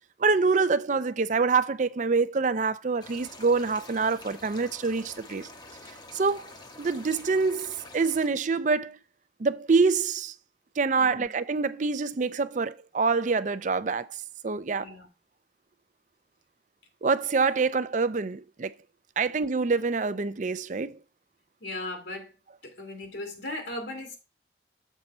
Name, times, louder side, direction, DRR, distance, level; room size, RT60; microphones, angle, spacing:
voice 1, 0.2-5.5 6.1-6.4 6.8-9.0 9.4-10.3 10.8-14.2 14.4-14.9 17.0-18.7 19.2-21.0, right 4 dB, 45° right, 0.5 m, -26 dB
sound 1, 3.0-8.3, left 2 dB, 25° left, 0.8 m, -47 dB
voice 2, 11.0-11.3 14.7-15.1 21.6-22.4 22.6-24.2, left 2 dB, 75° left, 2.2 m, -37 dB
7.4 x 4.3 x 5.3 m
head